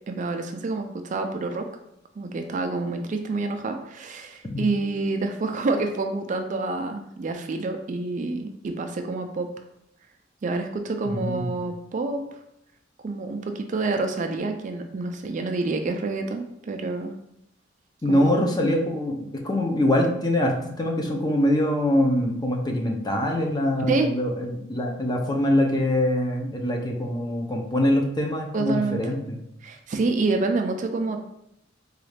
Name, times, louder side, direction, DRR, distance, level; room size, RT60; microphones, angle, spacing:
voice 1, 0.1-1.7 2.2-9.5 10.4-12.2 13.0-17.2 18.1-18.3 23.9-24.1 28.5-29.0 29.6-31.2, right 3 dB, 40° right, 5 dB, 0.4 m, -27 dB
voice 2, 11.1-11.5 18.0-29.4, left 1 dB, 20° left, 1 dB, 0.5 m, -24 dB
4.0 x 2.4 x 3.2 m, 0.77 s
head